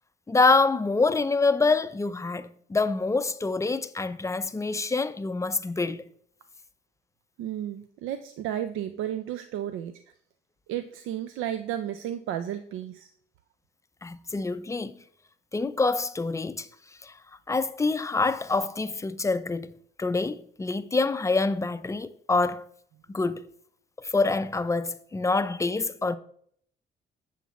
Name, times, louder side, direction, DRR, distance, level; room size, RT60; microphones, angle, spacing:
voice 1, 0.3-6.1 14.0-14.9 15.5-16.7 17.0-17.2 17.5-22.6 23.1-23.5 24.0-26.2, left 3 dB, 15° left, 0.4 m, -26 dB
voice 2, 7.4-10.0 10.7-13.1, right 11 dB, 85° right, 0.4 m, -33 dB
7.2 x 7.1 x 3.0 m
cardioid pair, 90°, 20 cm